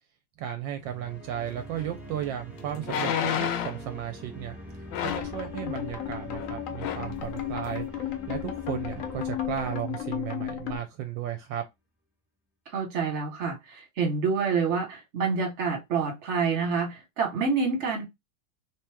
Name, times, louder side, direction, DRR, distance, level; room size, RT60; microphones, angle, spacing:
voice 1, 0.4-4.6 5.0-7.9 8.3-11.6, right 10 dB, 80° right, 1.2 m, -34 dB
sound 1, 0.8-10.8, right 1 dB, ahead, 0.6 m, -44 dB
sound 2, 1.8-1.9 2.8-3.9 4.9-5.4 6.3-6.5 6.8-7.1 7.7-7.8, left 9 dB, 80° left, 1.3 m, -30 dB
sound 3, 5.1-10.8, left 10 dB, 60° left, 0.9 m, -34 dB
voice 2, 12.7-18.0, right 5 dB, 40° right, 1.3 m, -27 dB
3.1 x 3.0 x 3.4 m
omnidirectional pair, 2.1 m